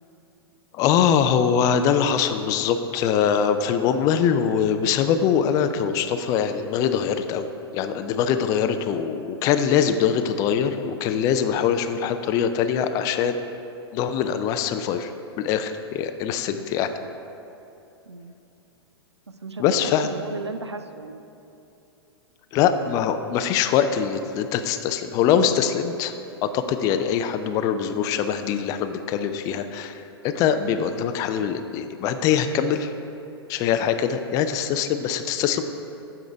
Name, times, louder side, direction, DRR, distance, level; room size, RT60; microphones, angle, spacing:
voice 1, 0.7-7.5 7.7-13.4 13.9-15.1 15.4-16.9 19.6-20.1 22.5-26.1 26.4-30.0 30.2-32.9 33.5-35.6, left 8 dB, 25° left, 9 dB, 0.3 m, -23 dB
voice 2, 19.3-21.2, right 3 dB, 85° right, 9 dB, 0.4 m, -36 dB
8.3 x 4.9 x 4.5 m, 2.9 s
figure-of-eight pair, 105°, 14 cm